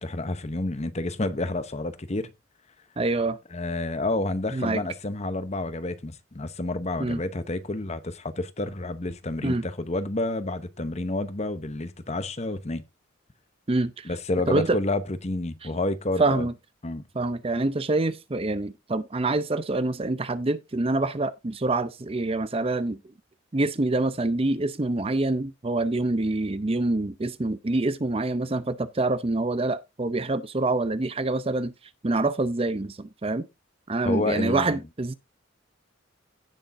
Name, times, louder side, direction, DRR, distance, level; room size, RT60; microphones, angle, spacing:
voice 1, 0.0-2.3 3.5-12.8 14.0-16.5 16.8-17.0 34.0-34.8, left 2 dB, 30° left, 0.9 m, -29 dB
voice 2, 3.0-3.4 4.5-4.8 7.0-7.2 9.4-9.6 13.7-14.1 14.5-14.8 16.2-16.5 17.1-23.0 23.5-31.7 32.0-33.5 33.9-35.1, right 2 dB, 25° right, 0.6 m, -26 dB
16.5 x 6.3 x 2.6 m
head